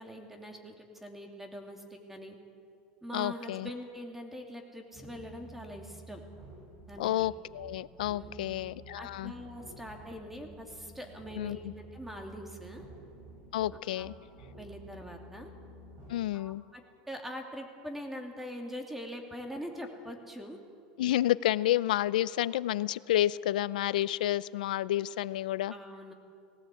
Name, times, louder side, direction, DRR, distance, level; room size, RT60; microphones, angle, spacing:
voice 1, 0.0-2.4 3.0-6.2 6.9-7.1 8.2-8.6 8.9-12.9 13.7-14.1 14.6-15.5 16.3-20.6 25.7-26.1, equal, 5° right, 3 dB, 2.7 m, -43 dB
voice 2, 3.1-3.7 7.0-9.3 11.4-11.7 13.5-14.1 16.1-16.6 21.0-25.7, left 13 dB, 90° left, 18 dB, 0.5 m, -30 dB
sound 1, 4.9-16.2, right 1 dB, 55° right, 7.3 m, -51 dB
18.5 x 17.5 x 8.4 m, 2.5 s
supercardioid pair, 120°, 4 cm